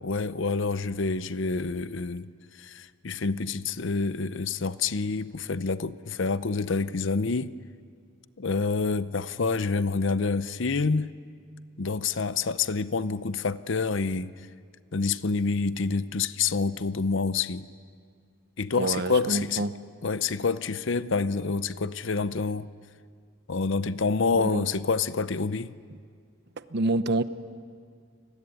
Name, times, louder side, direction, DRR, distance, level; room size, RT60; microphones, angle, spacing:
voice 1, 0.0-2.3 2.6-7.5 8.4-11.1 11.8-14.3 14.9-17.6 18.6-19.6 20.0-22.7 23.5-25.7, left 4 dB, 60° left, 0.7 m, -27 dB
voice 2, 18.8-19.7 24.4-24.6 26.7-27.2, right 2 dB, 50° right, 0.9 m, -27 dB
29.5 x 20.5 x 9.7 m
head